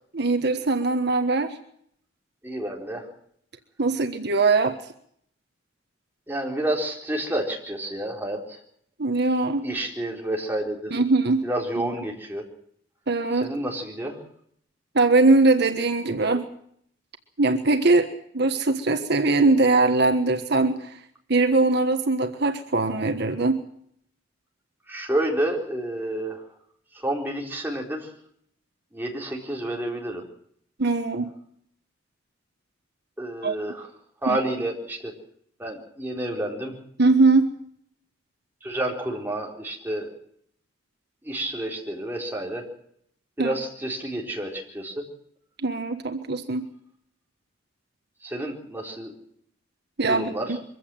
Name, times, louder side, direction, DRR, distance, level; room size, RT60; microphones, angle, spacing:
voice 1, 0.1-1.6 3.8-4.9 9.0-9.7 10.9-11.4 13.1-13.5 14.9-16.4 17.4-21.0 21.3-23.6 30.8-31.3 33.4-33.5 34.3-34.4 37.0-37.5 43.4-43.5 45.6-46.7 50.0-50.3, right 3 dB, 60° right, 7 dB, 1.4 m, -21 dB
voice 2, 2.4-3.1 6.3-8.6 9.6-10.9 11.4-12.4 13.3-14.2 24.9-26.4 26.9-28.1 28.9-30.2 33.2-33.9 34.2-35.1 35.6-36.8 38.6-40.1 41.2-42.7 43.4-45.0 48.2-49.1 50.1-50.6, right 1 dB, 10° right, 0 dB, 4.3 m, -29 dB
23.5 x 15.5 x 7.7 m, 0.67 s
head